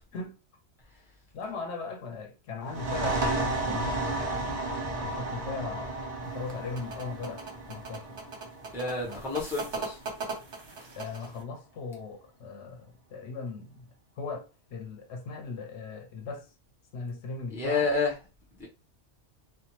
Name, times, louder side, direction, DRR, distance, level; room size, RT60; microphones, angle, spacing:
voice 1, 1.3-8.2 9.1-9.2 10.9-13.9 14.2-16.5 16.9-17.9, left 4 dB, 70° left, 0.8 m, -39 dB
sound 1, 2.6-10.0, right 2 dB, 35° right, 0.8 m, -33 dB
sound 2, 6.3-11.4, right 3 dB, 70° right, 1.2 m, -39 dB
voice 2, 8.7-10.0 17.5-18.1 18.6-18.7, left 3 dB, 5° right, 0.5 m, -29 dB
2.6 x 2.2 x 2.9 m
omnidirectional pair, 1.2 m